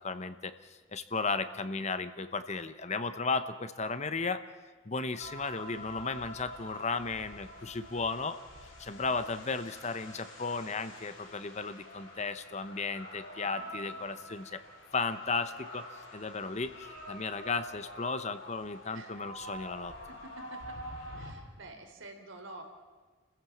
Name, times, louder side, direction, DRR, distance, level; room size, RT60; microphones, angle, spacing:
voice 1, 0.0-4.4 4.8-8.4 8.8-14.6 14.9-15.9 16.1-19.9, left 4 dB, 35° left, 11 dB, 0.9 m, -35 dB
sound 1, 5.2-21.3, equal, 90° left, 7.5 m, -47 dB
voice 2, 8.9-9.2 13.4-14.1 18.9-19.2 20.1-20.8 21.1-22.6, right 2 dB, 75° right, 4 dB, 3.5 m, -50 dB
29.5 x 15.5 x 7.4 m, 1.4 s
head